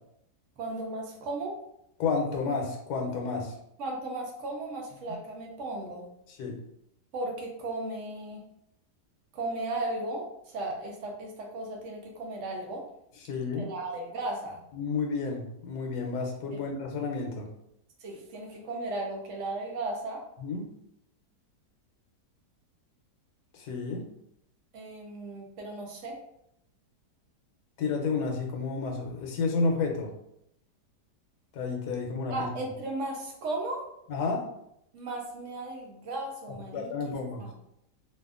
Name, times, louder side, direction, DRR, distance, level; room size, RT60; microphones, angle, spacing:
voice 1, 0.6-1.6 3.8-6.0 7.1-8.4 9.3-12.8 13.6-14.6 16.5-16.6 18.0-20.2 24.7-26.2 32.3-33.8 34.9-37.5, right 2 dB, 65° right, 0 dB, 0.7 m, -36 dB
voice 2, 2.0-3.5 6.4-6.6 13.3-13.7 14.7-17.5 20.4-20.7 23.5-24.1 27.8-30.1 31.5-32.5 34.1-34.5 36.5-37.4, left 4 dB, 75° left, 2 dB, 1.1 m, -31 dB
2.7 x 2.4 x 2.4 m, 0.77 s
omnidirectional pair, 1.8 m